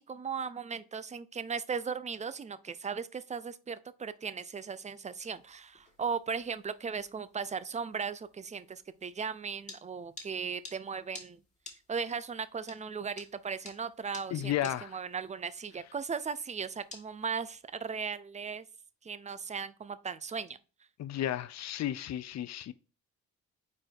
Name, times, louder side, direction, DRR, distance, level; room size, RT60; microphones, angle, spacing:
voice 1, 0.0-11.4 11.9-14.5 14.8-18.7 19.0-20.6, right 6 dB, 25° right, 0.6 m, -37 dB
sound 1, 5.1-17.7, left 3 dB, 25° left, 2.2 m, -54 dB
voice 2, 14.3-15.0 21.0-22.7, left 12 dB, 60° left, 0.7 m, -33 dB
4.8 x 4.5 x 4.3 m
cardioid pair, 90°, 30 cm